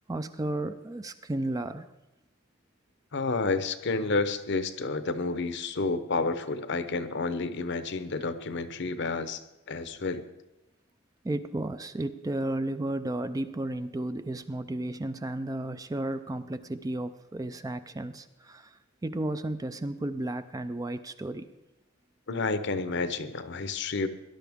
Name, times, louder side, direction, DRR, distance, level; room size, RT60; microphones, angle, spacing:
voice 1, 0.1-1.9 11.2-21.5, right 1 dB, 15° right, 11 dB, 0.4 m, -33 dB
voice 2, 3.1-9.4 9.7-10.2 22.3-24.1, left 3 dB, 60° left, 11 dB, 0.8 m, -30 dB
18.0 x 11.5 x 3.6 m, 0.96 s
head